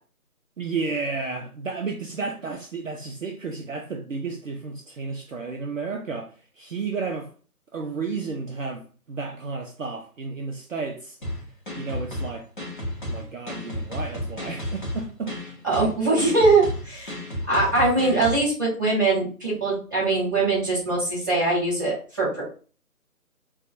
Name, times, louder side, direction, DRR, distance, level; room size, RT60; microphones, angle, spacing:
voice 1, 0.6-7.3 7.7-11.2 11.8-12.5 13.1-15.4, right 4 dB, 60° right, 0.5 m, -32 dB
sound 1, 11.2-18.4, left 1 dB, 35° left, 0.8 m, -32 dB
voice 2, 15.6-22.4, right 3 dB, 15° right, 0.9 m, -22 dB
4.0 x 2.3 x 2.5 m
figure-of-eight pair, 155°, 46 cm